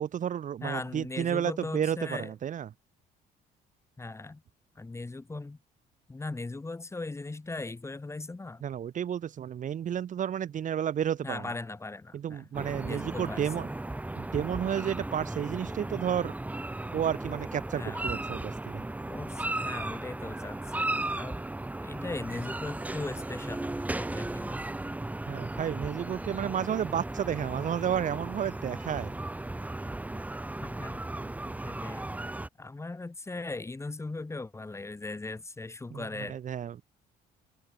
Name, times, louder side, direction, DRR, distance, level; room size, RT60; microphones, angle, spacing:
voice 1, 0.0-2.7 8.6-11.5 12.1-13.7 14.2-16.3 16.9-18.8 25.3-29.2 35.9-36.8, right 9 dB, 50° right, 2.1 m, -32 dB
voice 2, 0.6-2.3 4.0-4.4 4.7-5.6 6.1-8.6 11.2-12.4 12.9-13.5 17.7-18.1 19.1-21.5 21.8-23.7 24.0-24.8 30.6-31.0 31.6-32.1 32.6-36.4, left 3 dB, 15° left, 4.7 m, -39 dB
sound 1, 12.5-32.5, right 2 dB, 10° right, 1.6 m, -36 dB
cardioid pair, 110°, 17 cm